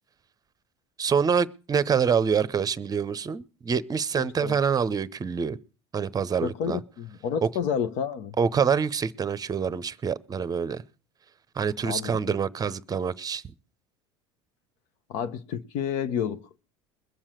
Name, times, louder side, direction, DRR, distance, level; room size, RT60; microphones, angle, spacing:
voice 1, 1.0-5.6 5.9-6.8 8.4-10.8 11.6-13.4, right 6 dB, 25° right, 0.8 m, -26 dB
voice 2, 4.2-4.6 6.4-8.3 11.8-12.2 15.1-16.6, left 8 dB, 60° left, 1.0 m, -30 dB
21.5 x 7.3 x 6.4 m
hypercardioid pair, 75°, 15 cm